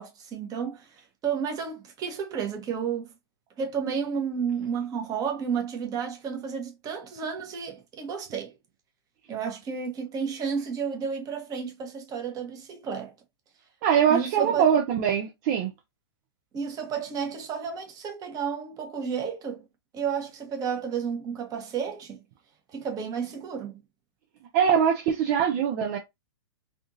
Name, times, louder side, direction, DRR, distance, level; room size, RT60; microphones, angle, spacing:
voice 1, 0.0-3.1 3.6-8.5 9.3-13.1 14.1-14.7 16.5-19.6 19.9-22.2 22.7-23.8, right 6 dB, 25° right, 1.1 m, -32 dB
voice 2, 13.8-15.7 24.5-26.0, right 8 dB, 45° right, 0.6 m, -22 dB
3.5 x 2.5 x 2.6 m
hypercardioid pair, 125°, 14 cm